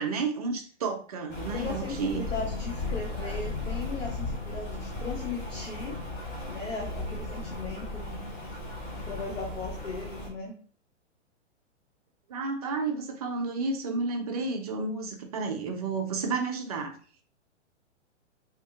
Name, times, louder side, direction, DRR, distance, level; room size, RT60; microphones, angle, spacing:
voice 1, 0.0-2.3 12.3-17.0, right 4 dB, 35° right, 3 dB, 0.4 m, -31 dB
Rain, 1.3-10.3, left 2 dB, 25° left, 0.7 m, -36 dB
voice 2, 1.5-6.0 6.5-8.2 8.9-10.6, left 3 dB, 80° left, -1 dB, 0.7 m, -37 dB
2.8 x 2.3 x 2.5 m, 0.42 s
figure-of-eight pair, 110°, 37 cm